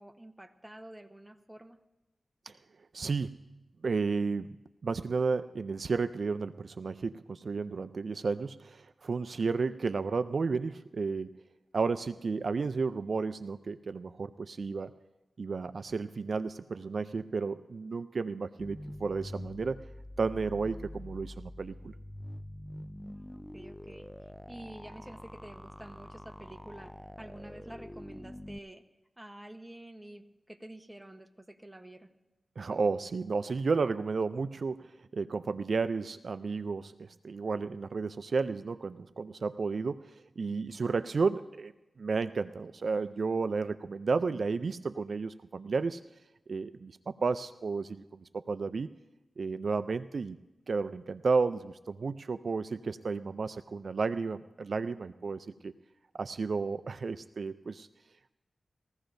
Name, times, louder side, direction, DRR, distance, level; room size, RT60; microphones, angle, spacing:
voice 1, 0.0-1.8 23.0-28.8 29.2-32.1, right 1 dB, 10° right, 6 dB, 1.0 m, -49 dB
voice 2, 2.9-3.4 3.8-4.5 4.8-11.3 11.7-14.9 15.4-19.8 20.2-21.9 32.6-41.7 42.0-46.0 46.5-48.9 49.4-50.4 50.7-55.7 56.2-57.9, right 4 dB, 65° right, 11 dB, 0.4 m, -32 dB
sound 1, 18.6-28.6, left 1 dB, 5° left, 0.3 m, -45 dB
21.0 x 15.0 x 2.6 m, 0.99 s
wide cardioid pair, 70°, 0 cm